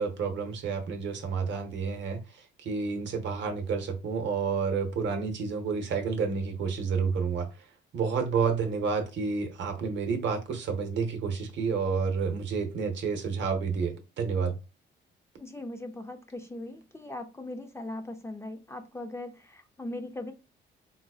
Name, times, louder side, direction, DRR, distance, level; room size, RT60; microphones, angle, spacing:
voice 1, 0.0-2.2 2.6-7.5 7.9-14.6, right 5 dB, 65° right, 0.8 m, -30 dB
voice 2, 15.4-20.3, left 1 dB, 15° left, 0.5 m, -39 dB
3.8 x 2.3 x 2.3 m
cardioid pair, 90°, 20 cm